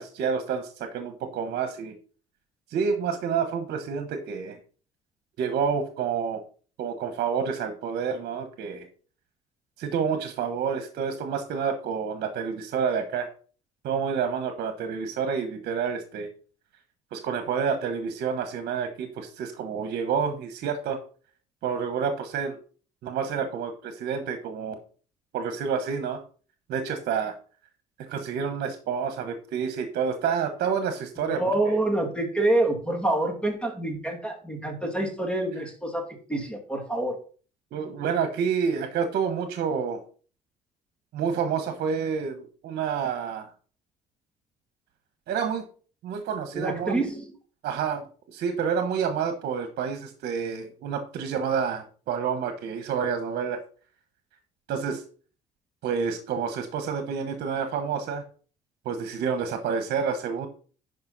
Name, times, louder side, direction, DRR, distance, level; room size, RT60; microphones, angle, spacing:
voice 1, 0.0-1.9 2.7-4.6 5.4-6.4 6.8-8.9 9.8-13.3 13.8-16.3 17.1-21.0 21.6-22.6 23.0-24.8 25.3-26.2 26.7-27.3 28.0-31.4 37.7-40.0 41.1-43.5 45.3-45.7 46.0-47.0 47.6-53.6 54.7-55.0 55.8-58.2 58.8-60.5, right 6 dB, 70° right, 8 dB, 1.2 m, -29 dB
voice 2, 31.3-37.2 46.5-47.3, right 2 dB, 5° left, 2 dB, 2.5 m, -27 dB
10.5 x 5.2 x 4.1 m, 0.40 s
cardioid pair, 110°, 17 cm